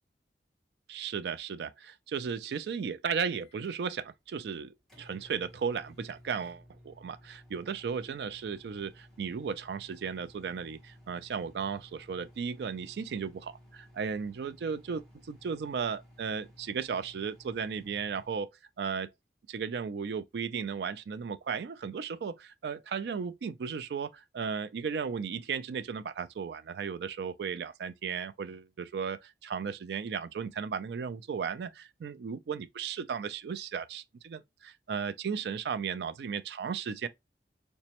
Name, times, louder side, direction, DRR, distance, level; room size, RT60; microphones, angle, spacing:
voice 1, 0.9-15.0 15.3-18.5 18.8-19.1 19.5-31.7 32.0-37.1, right 6 dB, 70° right, 0.3 m, -35 dB
Microwave oven, 3.3-18.4, equal, 5° left, 0.9 m, -57 dB
4.1 x 2.2 x 2.8 m
head